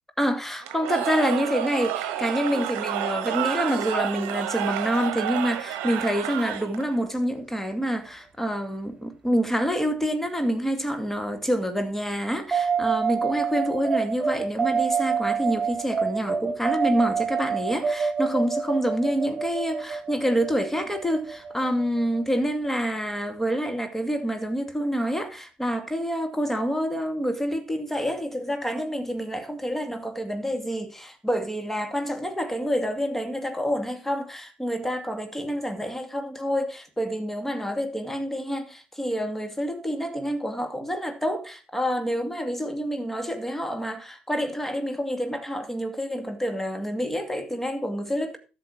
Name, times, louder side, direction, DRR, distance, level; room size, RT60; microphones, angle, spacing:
voice 1, 0.2-48.4, equal, 5° left, 2.2 m, -27 dB
Cheering / Crowd, 0.6-7.0, right 11 dB, 60° right, 1.2 m, -30 dB
sound 1, 12.5-22.7, right 6 dB, 20° right, 3.3 m, -27 dB
12.5 x 6.8 x 4.5 m
figure-of-eight pair, 55°, 4 cm